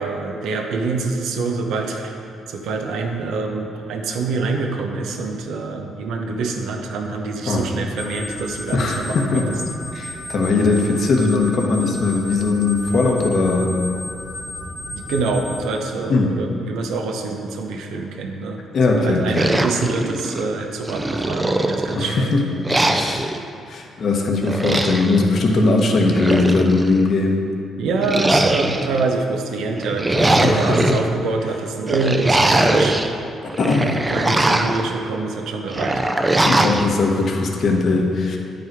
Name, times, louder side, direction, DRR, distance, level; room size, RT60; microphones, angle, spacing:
voice 1, 0.0-2.2 2.5-9.6 14.9-18.6 18.9-22.3 27.8-33.0 34.1-36.1, right 3 dB, 80° right, 2 dB, 0.9 m, -25 dB
sound 1, 8.0-15.6, left 1 dB, 5° left, 1.2 m, -33 dB
voice 2, 8.7-9.5 9.9-13.7 16.1-16.3 18.7-19.4 21.9-22.4 22.9-23.3 23.7-27.4 30.4-30.8 33.6-34.0 36.3-38.4, left 3 dB, 55° left, 1 dB, 1.1 m, -19 dB
sound 2, 19.3-20.5 20.9-22.1 22.6-23.4 24.4-25.2 26.0-27.0 28.0-29.0 29.8-31.0 31.9-33.1 33.5-34.8 35.7-36.9, right 1 dB, 15° right, 0.5 m, -20 dB
9.1 x 5.3 x 4.6 m, 2.5 s
cardioid pair, 90°, 0 cm